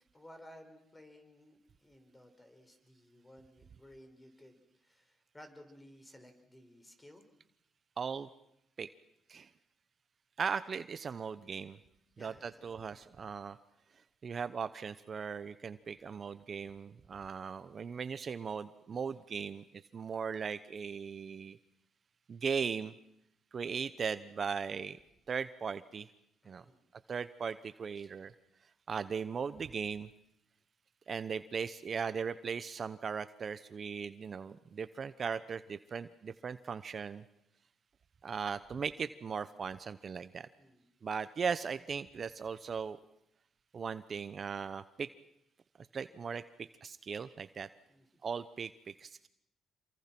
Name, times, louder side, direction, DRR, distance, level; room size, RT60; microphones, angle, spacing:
voice 1, 0.1-7.2 12.2-13.1 26.4-26.8 28.0-28.1 40.6-40.9 47.9-48.1, left 1 dB, 15° left, 6 dB, 4.8 m, -57 dB
voice 2, 8.0-8.3 8.8-8.9 9.3-9.5 10.4-11.8 12.2-13.6 14.2-19.6 19.9-21.6 22.3-22.9 23.5-25.0 25.3-26.1 26.5-26.6 27.1-28.3 28.9-30.1 31.1-37.2 38.2-40.5 41.0-43.0 43.7-45.1 45.8-46.4 46.8-47.7 48.2-49.3, right 6 dB, 45° right, 12 dB, 0.9 m, -38 dB
27.5 x 24.0 x 6.1 m, 0.79 s
cardioid pair, 90°, 0 cm